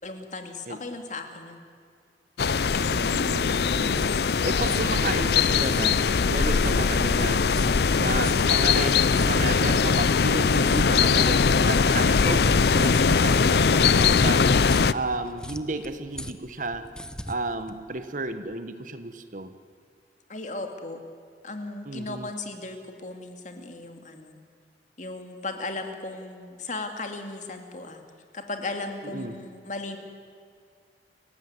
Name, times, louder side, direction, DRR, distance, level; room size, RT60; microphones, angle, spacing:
voice 1, 0.0-1.6 20.3-21.0 21.4-24.4 25.0-28.0 28.3-30.0, left 2 dB, 45° left, 5 dB, 2.4 m, -36 dB
sound 1, 2.4-14.9, left 5 dB, 60° left, 0.5 m, -21 dB
voice 2, 2.9-7.5 7.9-14.5 14.9-16.9 17.3-19.5 21.9-22.3 29.1-29.3, right 2 dB, 45° right, 10 dB, 1.2 m, -32 dB
sound 2, 3.7-18.5, left 1 dB, 5° left, 0.8 m, -42 dB
29.0 x 16.0 x 9.7 m, 2.2 s
head